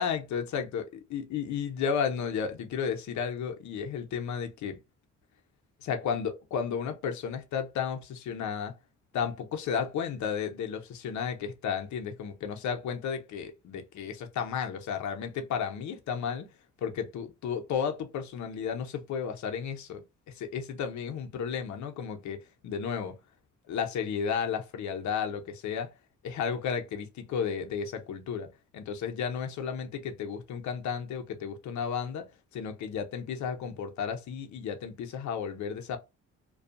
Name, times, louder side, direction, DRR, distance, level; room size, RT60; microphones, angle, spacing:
voice 1, 0.0-4.8 5.8-8.8 9.1-16.5 16.8-23.2 23.7-25.9 26.2-28.5 28.7-32.3 32.5-36.0, left 7 dB, 70° left, 0.7 m, -33 dB
2.6 x 2.3 x 2.4 m
cardioid pair, 90°, 30 cm